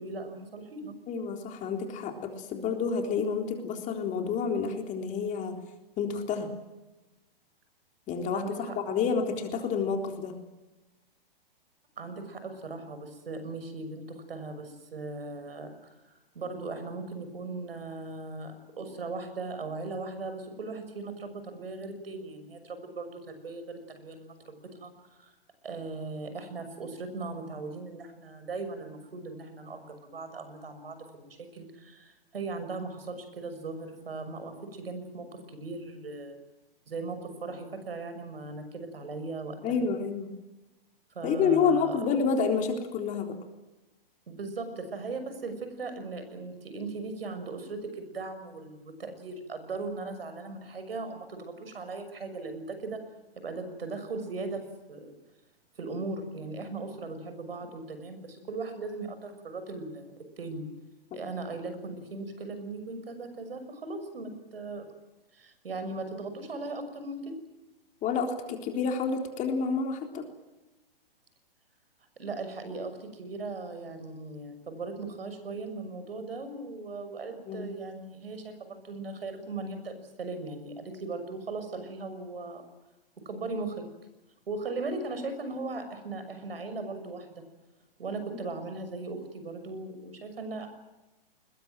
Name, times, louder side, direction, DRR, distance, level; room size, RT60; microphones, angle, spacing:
voice 1, 0.0-0.9 8.3-8.8 12.0-24.9 25.2-25.3 25.6-36.4 36.9-39.9 41.1-42.1 44.3-53.0 53.4-55.1 55.8-60.6 61.1-64.9 65.3-67.3 72.2-82.6 83.2-83.8 84.5-87.4 88.0-90.7, right 3 dB, 80° right, 9 dB, 6.5 m, -38 dB
voice 2, 1.1-5.5 6.0-6.5 8.1-10.3 39.6-40.3 41.2-43.4 61.1-61.2 68.0-70.2 77.5-77.6, left 5 dB, 25° left, 4 dB, 3.8 m, -29 dB
22.0 x 21.0 x 9.2 m, 1.1 s
hypercardioid pair, 130°, 29 cm